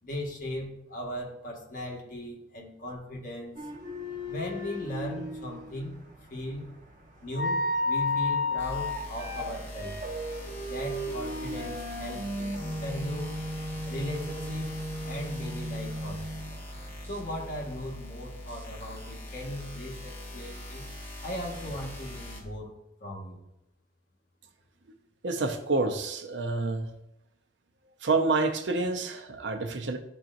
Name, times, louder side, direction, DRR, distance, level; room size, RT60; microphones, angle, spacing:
voice 1, 0.0-3.7 4.3-6.0 6.3-6.7 7.2-10.0 10.6-13.4 13.9-14.7 15.0-16.4 17.0-20.9 21.2-22.7 23.0-23.4, left 1 dB, 50° left, -2 dB, 1.6 m, -38 dB
sound 1, 3.6-17.8, left 2 dB, 50° right, 1.1 m, -34 dB
sound 2, 8.6-22.4, left 1 dB, 10° left, 1.5 m, -42 dB
voice 2, 25.2-26.9 28.0-30.0, right 3 dB, 85° right, 6 dB, 0.7 m, -28 dB
11.5 x 4.4 x 2.6 m, 0.87 s
head